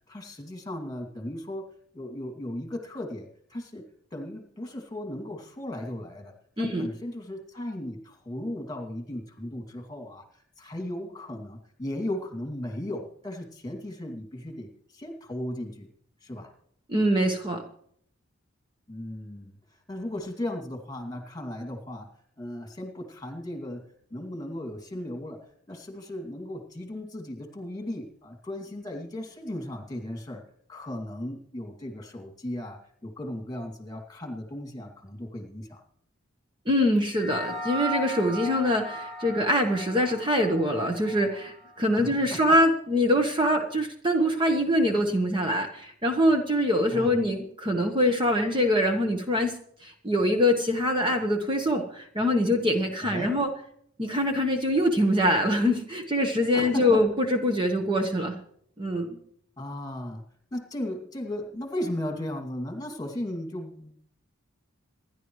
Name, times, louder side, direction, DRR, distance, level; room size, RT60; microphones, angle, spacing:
voice 1, 0.1-1.7 1.9-15.9 16.2-16.5 18.9-22.1 22.4-25.4 25.7-30.4 30.7-35.8 41.9-42.4 46.9-47.1 53.0-53.3 56.5-57.0 59.6-60.2 60.5-64.0, left 1 dB, 20° left, 4 dB, 2.4 m, -36 dB
voice 2, 6.6-6.9 16.9-17.6 36.7-49.5 49.8-53.5 54.0-58.4 58.8-59.1, equal, 25° right, 3 dB, 1.2 m, -24 dB
sound 1, 37.1-41.8, right 1 dB, ahead, 2.2 m, -37 dB
27.0 x 11.0 x 3.2 m, 0.66 s
head